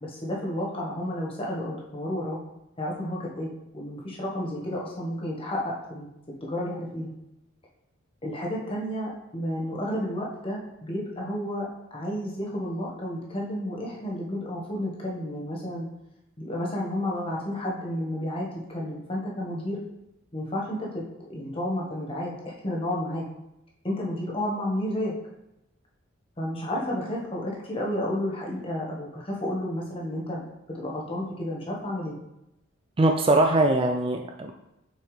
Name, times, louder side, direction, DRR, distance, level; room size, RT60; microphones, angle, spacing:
voice 1, 0.0-2.4 2.8-7.1 8.2-15.9 16.4-19.8 20.3-23.2 23.8-25.1 26.4-32.2, left 1 dB, 30° left, -3 dB, 1.3 m, -31 dB
voice 2, 33.0-34.5, right 2 dB, 25° right, 3 dB, 0.3 m, -21 dB
6.1 x 5.7 x 3.3 m, 0.88 s
head